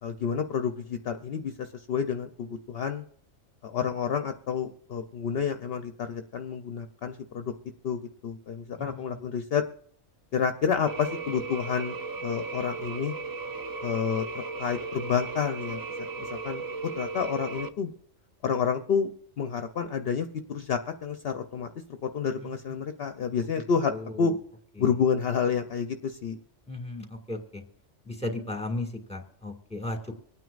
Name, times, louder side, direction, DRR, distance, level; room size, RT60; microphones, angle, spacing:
voice 1, 0.0-3.0 3.6-7.5 7.8-9.6 10.3-13.1 13.8-14.2 14.6-16.6 17.0-17.9 18.4-19.1 19.4-21.7 22.0-23.9 24.2-24.3 24.8-26.4, left 6 dB, 60° left, 8 dB, 0.8 m, -29 dB
voice 2, 8.8-9.2 22.4-22.8 23.9-24.3 24.8-24.9 26.7-27.6 28.1-30.2, left 2 dB, 5° left, 2 dB, 1.8 m, -36 dB
sound 1, 10.9-17.7, right 4 dB, 35° right, 0.3 m, -36 dB
25.0 x 9.2 x 2.4 m, 0.68 s
omnidirectional pair, 1.3 m